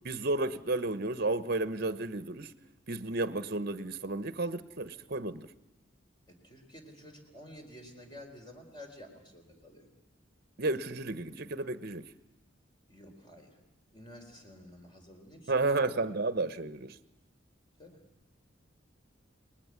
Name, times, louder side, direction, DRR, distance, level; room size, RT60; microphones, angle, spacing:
voice 1, 0.0-2.5 2.9-5.5 10.6-12.0 15.5-16.9, right 2 dB, 50° right, 1.0 m, -32 dB
voice 2, 6.3-9.9 12.9-13.6 13.9-15.9 17.8-18.0, left 1 dB, 25° left, 4.2 m, -51 dB
30.0 x 20.0 x 9.6 m
head